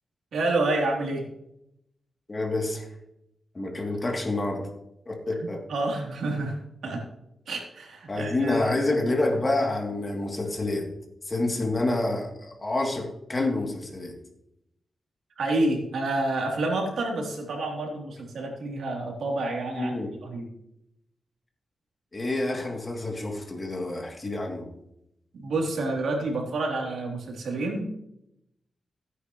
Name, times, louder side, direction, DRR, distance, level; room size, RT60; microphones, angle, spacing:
voice 1, 0.3-1.2 5.7-6.6 6.8-7.0 7.5-8.6 15.4-19.9 20.2-20.5 25.3-27.9, right 2 dB, 80° right, -1 dB, 3.3 m, -28 dB
voice 2, 2.3-2.9 3.5-4.7 5.1-5.6 8.1-10.9 11.2-14.1 19.7-20.1 22.1-24.7, left 2 dB, 30° left, 1 dB, 2.8 m, -28 dB
16.0 x 9.7 x 3.2 m, 0.80 s
cardioid pair, 90°, 0 cm